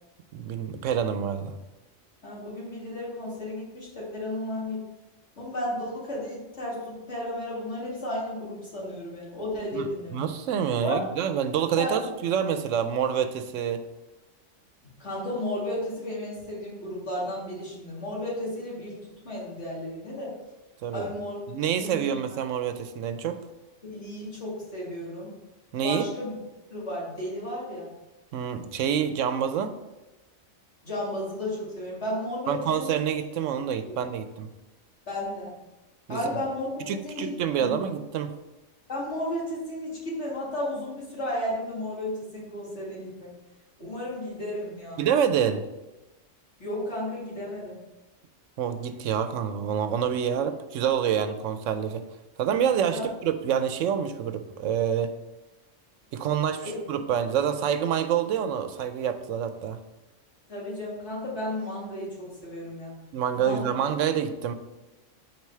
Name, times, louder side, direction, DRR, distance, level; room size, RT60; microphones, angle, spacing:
voice 1, 0.3-1.5 9.7-13.8 20.8-21.1 21.5-23.4 25.7-26.1 28.3-29.7 32.5-34.5 36.1-36.2 36.9-38.4 45.0-45.6 48.6-52.0 52.4-55.1 56.1-59.8 63.1-64.5, right 8 dB, 80° right, 10 dB, 0.9 m, -27 dB
voice 2, 2.2-4.8 5.4-10.3 10.8-11.1 11.8-12.0 15.0-19.0 19.2-20.3 20.9-22.2 23.8-25.3 25.8-26.3 26.7-27.9 30.8-32.9 33.5-33.7 35.1-35.6 36.1-37.8 38.9-43.3 43.8-45.1 46.6-47.8 52.9-53.1 56.6-56.7 60.5-63.0 63.3-63.8, left 1 dB, 65° left, -6 dB, 2.6 m, -33 dB
4.7 x 4.6 x 5.5 m, 1.0 s
omnidirectional pair, 1.3 m